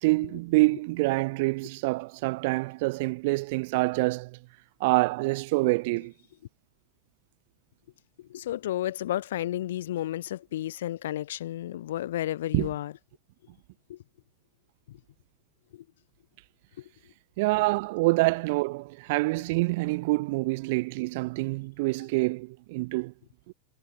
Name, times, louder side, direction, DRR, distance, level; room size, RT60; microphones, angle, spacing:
voice 1, 0.0-4.4 4.8-6.1 12.5-12.7 17.4-23.1 23.5-23.6, right 24 dB, 50° right, 1.0 m, -26 dB
voice 2, 8.3-12.9 13.9-14.0 14.9-15.0 15.7-15.8, left 13 dB, 60° left, 1.3 m, -32 dB
figure-of-eight pair, 90°, 0 cm